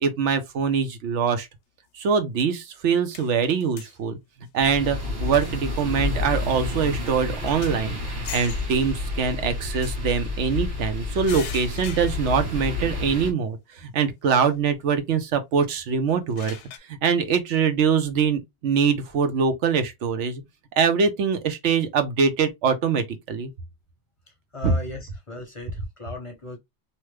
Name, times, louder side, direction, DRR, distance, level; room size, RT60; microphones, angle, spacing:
voice 1, 0.0-1.5 1.9-4.2 4.5-16.6 16.9-20.4 20.8-23.5 24.6-24.7, right 6 dB, 90° right, 1.0 m, -23 dB
sound 1, 2.6-2.7 3.1-4.0 4.5-4.6 5.3-5.8 6.2-6.3 6.8-6.9 7.1-7.9 8.2-8.8 9.7-10.6 11.2-12.5 12.9-13.0 14.4-14.5 16.1-16.8, left 8 dB, 85° left, 0.9 m, -41 dB
sound 2, 4.6-13.3, left 3 dB, 45° right, 1.5 m, -30 dB
voice 2, 24.3-26.6, left 2 dB, 35° left, 0.6 m, -38 dB
3.0 x 2.1 x 3.1 m
omnidirectional pair, 1.2 m